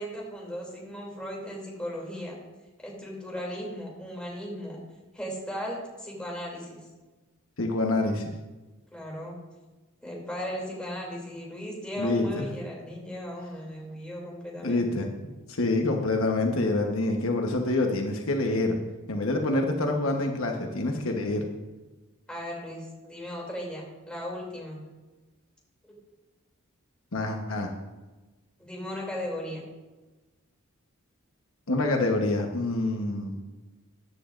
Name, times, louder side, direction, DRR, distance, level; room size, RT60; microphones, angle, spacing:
voice 1, 0.0-2.4 2.8-4.8 5.1-6.8 8.9-9.4 10.0-14.9 22.3-24.8 28.6-29.6, equal, 5° left, -3 dB, 2.8 m, -36 dB
voice 2, 7.6-8.2 12.0-12.4 14.6-15.1 15.5-18.7 19.1-21.5 27.1-27.7 31.7-33.4, left 2 dB, 70° left, 2 dB, 1.1 m, -26 dB
14.5 x 9.4 x 2.6 m, 1.2 s
head